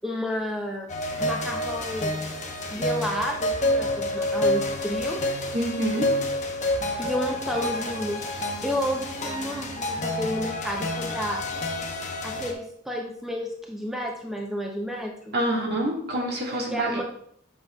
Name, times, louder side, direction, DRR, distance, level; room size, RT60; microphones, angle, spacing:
voice 1, 0.0-0.9 1.2-2.3 2.7-5.4 7.0-11.4 12.2-15.4 16.5-17.0, equal, ahead, 0 dB, 0.6 m, -31 dB
sound 1, 0.9-12.5, left 1 dB, 35° left, 0.9 m, -28 dB
voice 2, 5.5-6.1 15.3-17.0, right 1 dB, 50° right, -1 dB, 1.6 m, -27 dB
7.8 x 5.9 x 2.3 m, 0.65 s
head